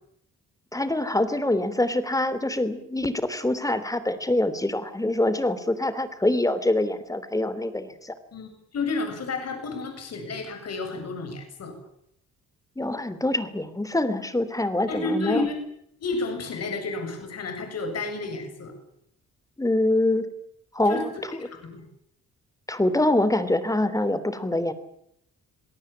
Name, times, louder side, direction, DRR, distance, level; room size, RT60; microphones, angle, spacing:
voice 1, 0.7-8.1 12.8-15.5 19.6-20.3 20.7-21.4 22.7-24.7, left 1 dB, 10° left, 14 dB, 3.4 m, -25 dB
voice 2, 8.3-11.7 14.9-15.6 16.0-18.7 20.9-21.0 21.4-21.8, left 3 dB, 55° left, 6 dB, 7.8 m, -31 dB
27.0 x 18.5 x 8.8 m, 0.74 s
cardioid pair, 90°, 30 cm